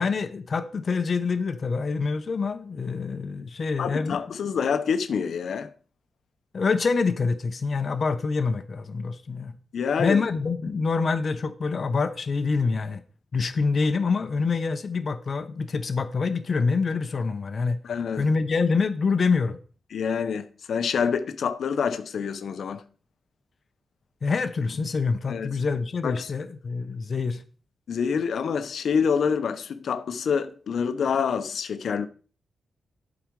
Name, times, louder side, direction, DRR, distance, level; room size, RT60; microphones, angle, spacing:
voice 1, 0.0-4.2 6.5-9.5 10.0-13.0 13.3-17.8 18.2-19.6 24.2-27.4, left 4 dB, 40° left, 0.8 m, -26 dB
voice 2, 3.8-5.7 9.7-10.2 17.8-18.2 19.9-22.8 25.3-25.5 26.0-26.3 27.9-32.1, left 6 dB, 70° left, 0.9 m, -27 dB
12.0 x 5.0 x 4.7 m
wide cardioid pair, 160°, 0 cm